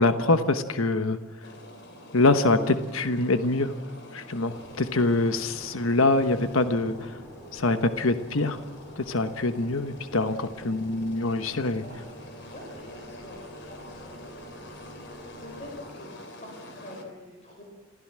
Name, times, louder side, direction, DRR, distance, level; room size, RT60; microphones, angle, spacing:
voice 1, 0.0-1.5 2.1-3.7 4.1-7.2 7.5-8.6 9.0-11.8, left 2 dB, 80° left, 10 dB, 1.2 m, -24 dB
sound 1, 1.4-17.0, left 1 dB, 55° left, 3.5 m, -47 dB
sound 2, 4.5-16.0, right 1 dB, 15° left, 5.6 m, -48 dB
voice 2, 12.4-14.2 14.5-14.9 15.4-17.6, left 1 dB, 35° left, -1 dB, 5.3 m, -46 dB
27.5 x 16.0 x 7.6 m, 1.2 s
head